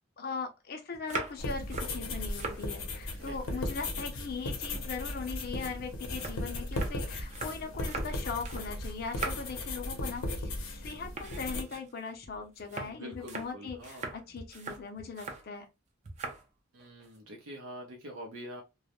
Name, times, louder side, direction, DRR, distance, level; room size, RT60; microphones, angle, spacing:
voice 1, 0.2-15.7, left 5 dB, 50° left, 0.5 m, -40 dB
sound 1, 0.9-2.7 3.0-4.2 4.5-8.7 9.0-9.6 10.0-10.3 10.6-10.8 11.1-15.5 16.0-16.4 16.8-17.2, right 3 dB, 35° right, 0.5 m, -42 dB
sound 2, 1.4-11.6, left 1 dB, 90° left, 0.7 m, -37 dB
voice 2, 3.1-3.6 12.8-14.1 16.7-18.6, equal, 85° right, 0.6 m, -45 dB
2.3 x 2.0 x 2.8 m
head